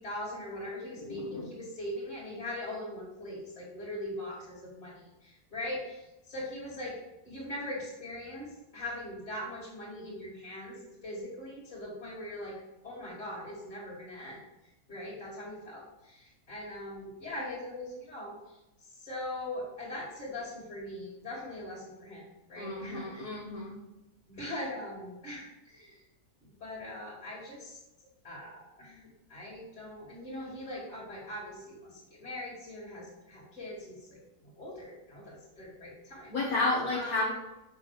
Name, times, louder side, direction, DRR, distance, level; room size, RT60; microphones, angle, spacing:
voice 1, 0.0-7.0 7.2-14.4 14.9-23.4 24.3-26.0 26.6-27.8 28.2-36.3 36.9-37.2, left 1 dB, 50° left, -6 dB, 2.9 m, -41 dB
voice 2, 1.0-1.5 22.6-23.7 36.3-37.3, left 2 dB, 70° left, -6 dB, 1.8 m, -32 dB
7.3 x 5.9 x 4.9 m, 0.95 s
omnidirectional pair, 1.6 m